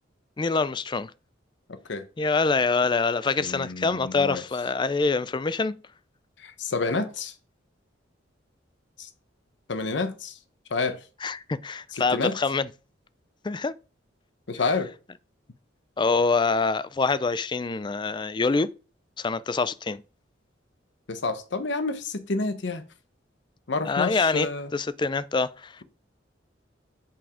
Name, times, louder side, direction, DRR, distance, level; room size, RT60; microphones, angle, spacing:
voice 1, 0.4-1.1 2.2-5.8 11.2-12.7 13.4-13.7 16.0-18.7 19.2-20.0 23.8-25.8, left 4 dB, 25° left, 0.4 m, -25 dB
voice 2, 3.4-4.4 6.4-7.3 9.0-9.1 9.7-10.4 10.7-11.0 11.9-12.4 14.5-14.9 21.1-22.8 23.7-24.7, left 3 dB, 65° left, 0.9 m, -29 dB
7.1 x 6.0 x 4.9 m
head